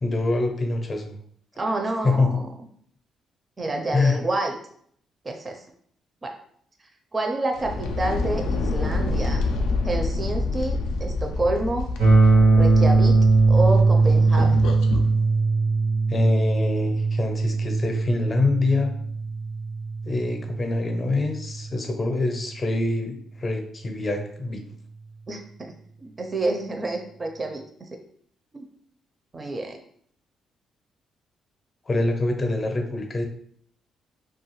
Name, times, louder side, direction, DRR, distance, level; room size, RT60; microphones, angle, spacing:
voice 1, 0.0-1.2 2.0-2.4 3.9-4.2 16.1-18.9 20.0-24.6 31.9-33.3, left 2 dB, 35° left, 4 dB, 0.6 m, -25 dB
voice 2, 1.6-2.5 3.6-4.6 5.2-5.6 6.2-6.3 7.1-9.4 9.8-11.9 12.6-13.2 13.5-14.6 25.3-25.7 26.0-27.9 28.5-28.6 29.3-29.8, right 2 dB, 30° right, 3 dB, 0.4 m, -28 dB
sound 1, 7.5-15.1, left 3 dB, 90° left, 0.3 m, -27 dB
sound 2, 12.0-21.9, right 3 dB, 85° right, 0.6 m, -20 dB
2.5 x 2.3 x 3.0 m, 0.64 s
cardioid pair, 90°, 0 cm